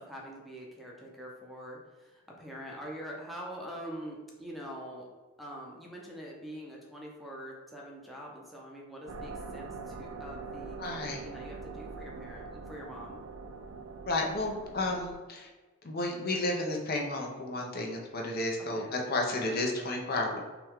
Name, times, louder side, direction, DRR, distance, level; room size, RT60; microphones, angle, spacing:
voice 1, 0.0-5.1 5.4-13.2 18.7-18.9, equal, ahead, -3 dB, 0.6 m, -44 dB
sound 1, 9.1-15.1, right 4 dB, 65° right, 0.4 m, -43 dB
voice 2, 10.8-11.2 14.1-15.5 15.8-20.4, left 2 dB, 45° left, 1 dB, 0.7 m, -32 dB
5.7 x 2.3 x 3.6 m, 1.2 s
head